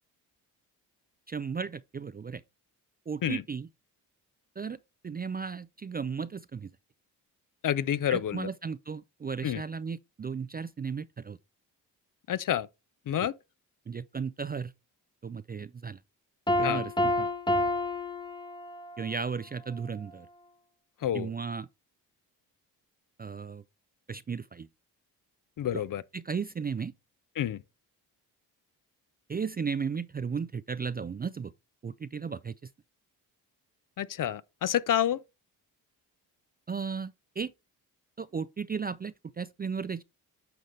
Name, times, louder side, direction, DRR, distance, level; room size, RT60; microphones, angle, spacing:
voice 1, 1.3-2.4 3.1-3.7 4.6-4.8 5.0-6.7 8.1-11.4 13.2-13.3 13.9-14.7 15.2-16.0 16.6-17.3 19.0-20.3 21.1-21.7 23.2-23.6 24.1-24.7 25.7-25.8 26.1-26.9 29.3-31.5 31.8-32.6 36.7-37.5 38.2-40.0, right 5 dB, 20° right, 0.4 m, -35 dB
voice 2, 7.6-8.5 9.4-9.6 12.3-12.7 13.1-13.3 16.6-16.8 21.0-21.3 25.6-26.0 27.4-27.6 34.0-35.2, left 10 dB, 45° left, 0.6 m, -28 dB
Piano, 16.5-19.0, left 1 dB, 10° left, 0.9 m, -29 dB
9.3 x 5.1 x 3.2 m
hypercardioid pair, 40°, 47 cm